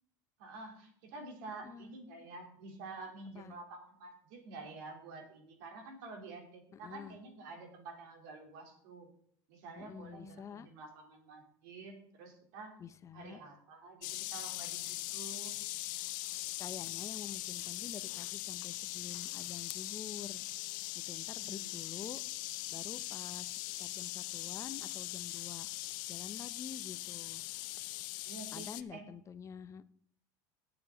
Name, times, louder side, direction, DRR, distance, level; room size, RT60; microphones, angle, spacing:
voice 1, 0.4-9.1 9.5-12.8 13.1-15.6 21.4-21.7 28.2-29.1, right 3 dB, 75° right, 2 dB, 3.5 m, -49 dB
voice 2, 1.6-1.9 3.3-3.6 6.7-7.2 9.8-10.7 12.8-13.4 16.6-20.4 20.9-22.2 22.7-25.7 26.1-27.4 28.5-29.9, left 7 dB, 30° left, 13 dB, 0.7 m, -48 dB
sound 1, 14.0-28.8, left 18 dB, 80° left, 0.6 m, -41 dB
18.0 x 7.0 x 4.0 m, 0.63 s
supercardioid pair, 120°, 10 cm